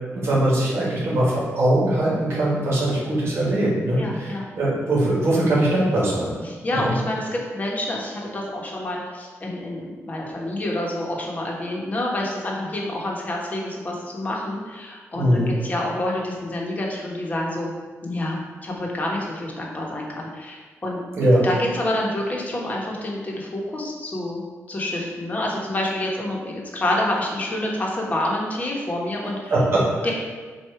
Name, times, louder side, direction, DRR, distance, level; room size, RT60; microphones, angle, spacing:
voice 1, 0.1-6.3 6.7-6.9 15.1-15.5 21.2-21.4 29.5-30.1, right 1 dB, 55° right, -6 dB, 1.8 m, -21 dB
voice 2, 4.0-4.4 6.4-17.7 18.0-18.4 18.6-21.0 21.4-24.4 24.7-29.5 30.0-30.1, left 1 dB, 30° left, -2 dB, 1.2 m, -28 dB
7.6 x 2.6 x 4.7 m, 1.4 s
wide cardioid pair, 145°, 5 cm